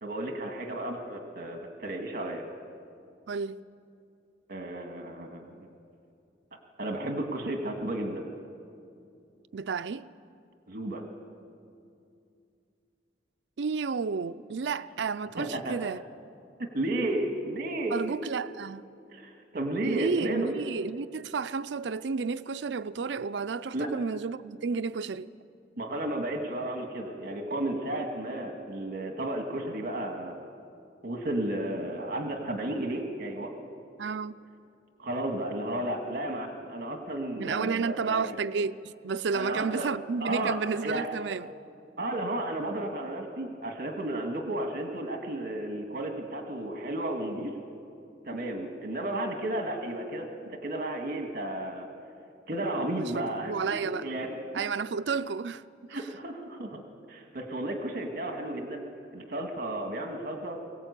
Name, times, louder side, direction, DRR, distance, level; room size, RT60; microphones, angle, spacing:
voice 1, 0.0-2.4 4.5-5.6 6.8-8.3 10.7-11.0 15.4-15.7 16.7-18.3 19.1-20.5 23.7-23.9 25.8-30.4 31.0-33.5 35.0-38.4 39.3-39.9 40.2-40.6 40.8-41.1 42.0-47.6 48.3-51.9 52.5-54.4 55.9-56.8 57.1-58.8 59.1-60.6, right 1 dB, 55° right, 1.9 m, -33 dB
voice 2, 3.3-3.6 9.5-10.1 13.6-16.0 17.9-18.8 19.8-25.3 34.0-34.4 37.3-41.5 52.9-54.1 54.5-55.6 55.9-56.1, right 5 dB, 70° right, 0.4 m, -31 dB
23.5 x 18.0 x 8.3 m
head